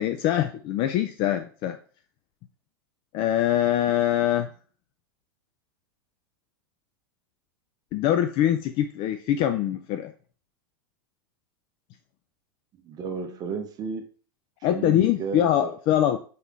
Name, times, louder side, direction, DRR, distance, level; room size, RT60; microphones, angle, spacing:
voice 1, 0.0-1.8 3.1-4.5 7.9-10.1 14.6-16.2, left 11 dB, 45° left, 8 dB, 0.4 m, -23 dB
voice 2, 12.8-14.1 14.7-15.7, right 5 dB, 35° right, 6 dB, 0.8 m, -33 dB
4.3 x 3.5 x 3.5 m, 0.41 s
hypercardioid pair, 105°, 12 cm